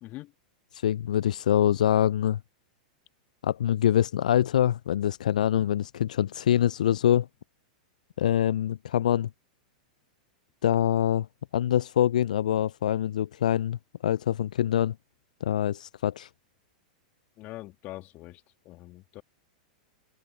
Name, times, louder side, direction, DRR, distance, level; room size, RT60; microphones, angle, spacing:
voice 1, 0.0-0.3 17.4-19.2, left 18 dB, 40° left, 2.2 m, -43 dB
voice 2, 0.7-2.4 3.4-7.3 8.2-9.3 10.6-11.3 11.5-14.9 15.4-16.3, left 10 dB, 70° left, 0.3 m, -25 dB
open air
figure-of-eight pair, 100°, 4 cm